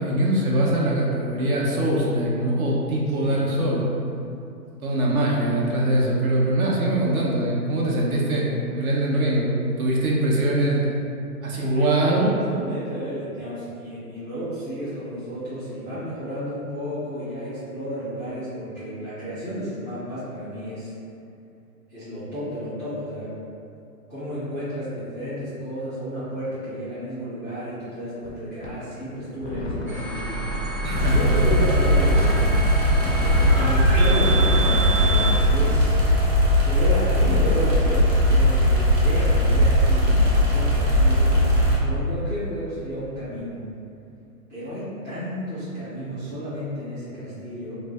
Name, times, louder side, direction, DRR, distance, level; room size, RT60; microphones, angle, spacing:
voice 1, 0.0-3.8 4.8-10.8 11.4-12.3 30.8-31.4, right 1 dB, 60° right, -4 dB, 0.8 m, -22 dB
voice 2, 11.5-20.9 21.9-23.3 24.1-30.2 30.9-32.4 33.5-36.0 36.6-41.4 41.8-43.6 44.5-47.8, equal, 15° right, -18 dB, 0.4 m, -32 dB
sound 1, 28.2-28.3 28.6-28.7 29.4-31.5 32.1-32.5 32.9-33.6 34.2-34.7 35.2-35.8, left 2 dB, 45° left, 0.4 m, -32 dB
sound 2, 29.9-35.3, right 1 dB, 30° right, 0.8 m, -28 dB
sound 3, 30.9-41.8, equal, 80° right, 1.1 m, -19 dB
2.5 x 2.1 x 3.4 m, 2.6 s
hypercardioid pair, 145°, 47 cm